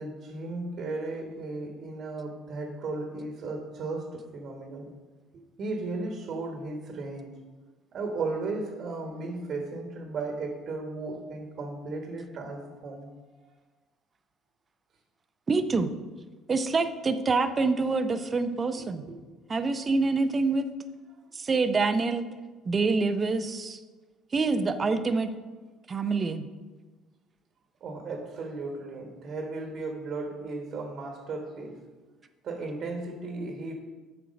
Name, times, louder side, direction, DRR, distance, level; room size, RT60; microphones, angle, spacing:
voice 1, 0.0-4.9 5.6-7.3 7.9-13.1 13.4-13.5 18.7-19.2 27.8-31.8 32.4-33.7, right 3 dB, 55° right, 2 dB, 1.3 m, -35 dB
voice 2, 15.5-15.9 16.5-19.0 19.5-20.7 21.3-22.3 22.7-23.8 24.3-25.3 25.9-26.5, right 4 dB, 35° right, 10 dB, 0.6 m, -26 dB
7.6 x 4.5 x 5.2 m, 1.3 s
hypercardioid pair, 65°, 0 cm